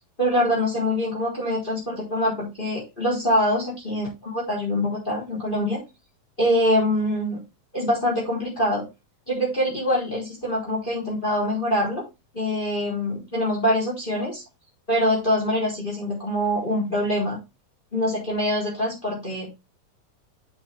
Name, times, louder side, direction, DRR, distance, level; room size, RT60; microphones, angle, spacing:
voice 1, 0.2-5.8 6.4-7.4 7.7-8.9 9.3-12.0 12.3-14.4 14.9-17.4 17.9-19.5, equal, 15° left, -3 dB, 4.2 m, -24 dB
7.2 x 7.2 x 3.6 m, 0.25 s
omnidirectional pair, 3.9 m